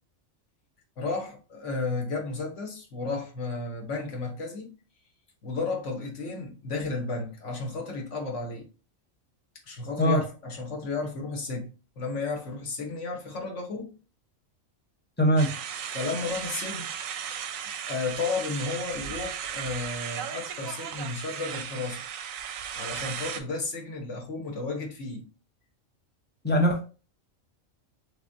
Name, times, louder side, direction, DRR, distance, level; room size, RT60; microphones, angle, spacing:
voice 1, 1.0-4.7 5.4-8.7 9.7-11.7 12.0-14.0 15.9-16.9 17.9-22.0 22.7-25.3, left 3 dB, 65° left, 1.3 m, -33 dB
voice 2, 15.2-15.5 26.4-26.8, equal, 10° left, 0.6 m, -21 dB
sound 1, 15.4-23.4, right 8 dB, 90° right, 1.0 m, -36 dB
3.5 x 3.5 x 2.6 m
omnidirectional pair, 1.4 m